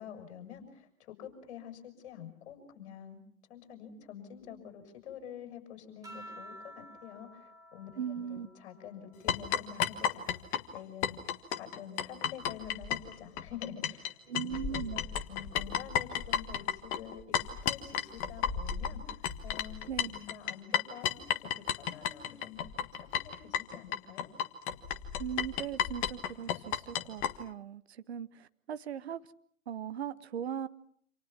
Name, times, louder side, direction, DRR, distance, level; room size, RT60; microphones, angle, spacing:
voice 1, 0.0-3.2 3.5-10.3 10.7-11.2 11.5-17.4 17.6-24.3, left 8 dB, 40° left, 5 dB, 7.2 m, -47 dB
sound 1, 6.0-10.8 11.3-13.0 14.2-14.7, equal, 10° right, 2.9 m, -54 dB
voice 2, 8.0-8.5 14.3-15.0 19.9-20.1 25.2-29.2 29.7-30.7, right 8 dB, 50° right, 14 dB, 1.2 m, -39 dB
sound 2, 9.3-14.1 14.3-27.3, left 9 dB, 20° left, 1.4 m, -32 dB
28.5 x 27.5 x 6.0 m, 0.63 s
figure-of-eight pair, 125°, 42 cm